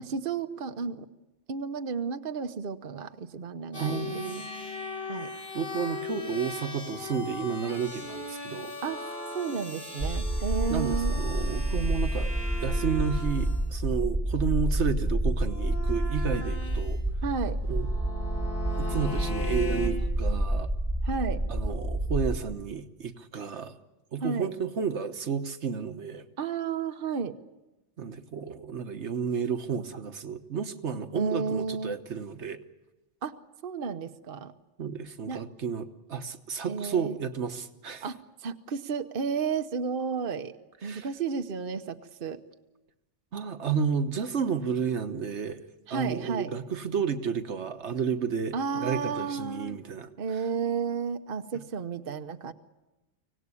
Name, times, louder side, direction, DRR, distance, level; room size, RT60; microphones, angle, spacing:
voice 1, 0.1-1.1 1.5-4.0 5.1-5.3 8.8-11.2 17.2-17.6 21.0-21.4 24.2-24.5 26.4-27.3 31.1-32.0 33.2-33.3 33.6-34.5 35.3-35.4 36.7-37.2 38.0-40.5 40.8-42.4 45.9-46.5 48.5-49.8 50.2-52.5, right 5 dB, 50° right, 9 dB, 1.1 m, -32 dB
sound 1, 3.7-13.6 15.4-16.9 17.7-19.9, left 2 dB, 55° left, 5.2 m, -38 dB
voice 2, 3.8-4.5 5.5-8.7 10.7-12.3 12.6-17.0 17.7-17.9 18.8-20.7 21.5-23.8 24.1-26.2 28.0-32.6 34.8-38.1 40.8-41.1 43.3-45.6 45.9-50.1, right 6 dB, 75° right, 9 dB, 1.5 m, -31 dB
sound 2, 10.0-22.4, right 1 dB, 10° right, 1.7 m, -29 dB
25.0 x 18.0 x 9.8 m, 1.0 s
omnidirectional pair, 1.2 m